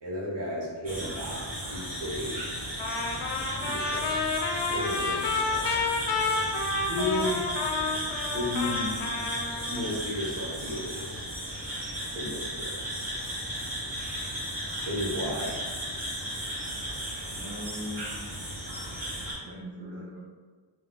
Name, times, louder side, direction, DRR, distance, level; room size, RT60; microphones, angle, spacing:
voice 1, 0.0-2.4 3.6-4.2 4.7-5.7 6.9-7.4 8.3-8.9 9.7-11.3 12.1-12.7 14.9-15.6, left 1 dB, 60° right, -5 dB, 1.0 m, -33 dB
sound 1, 0.8-19.3, equal, 45° right, 1.4 m, -35 dB
Trumpet, 2.8-9.8, left 3 dB, 65° left, 0.6 m, -30 dB
voice 2, 17.4-18.1 19.4-20.2, equal, 25° right, -6 dB, 0.6 m, -39 dB
3.6 x 2.3 x 2.2 m, 1.5 s
wide cardioid pair, 100°, 49 cm